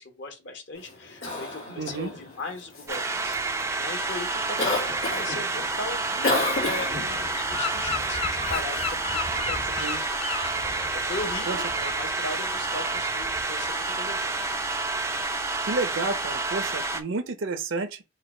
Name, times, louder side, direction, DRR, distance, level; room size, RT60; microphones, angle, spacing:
voice 1, 0.0-9.9 10.5-11.6 12.0-14.3, left 2 dB, 55° left, 1.2 m, -38 dB
Cough, 0.7-15.2, left 2 dB, 80° left, 2.0 m, -35 dB
voice 2, 1.8-2.1 9.8-10.0 11.5-11.9 15.6-18.0, right 3 dB, 65° right, 0.6 m, -31 dB
sound 1, 2.9-17.0, right 3 dB, 15° right, 0.3 m, -29 dB
Gull seagull / Wind, 6.4-13.7, left 4 dB, 30° left, 0.7 m, -35 dB
4.8 x 2.3 x 4.3 m
head